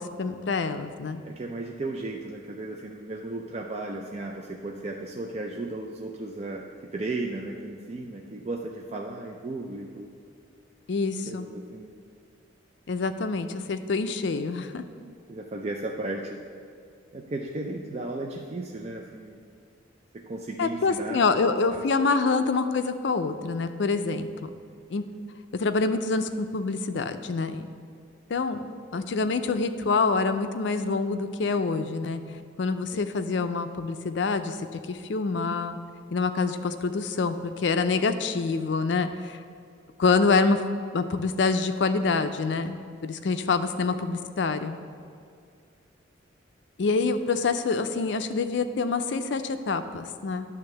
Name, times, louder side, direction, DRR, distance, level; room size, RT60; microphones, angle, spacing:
voice 1, 0.0-1.2 10.9-11.5 12.9-14.8 20.6-24.5 24.9-25.0 25.5-27.7 28.3-32.2 32.6-34.6 34.9-35.8 36.1-39.4 40.0-40.6 40.9-42.8 43.0-44.8 46.8-50.5, left 4 dB, 65° left, 9 dB, 0.4 m, -26 dB
voice 2, 1.2-10.1 11.3-11.9 15.3-16.4 17.1-19.4 20.1-21.8 32.9-33.0 43.9-44.0, right 2 dB, 35° right, 1 dB, 0.4 m, -35 dB
10.5 x 3.5 x 6.7 m, 2.4 s
head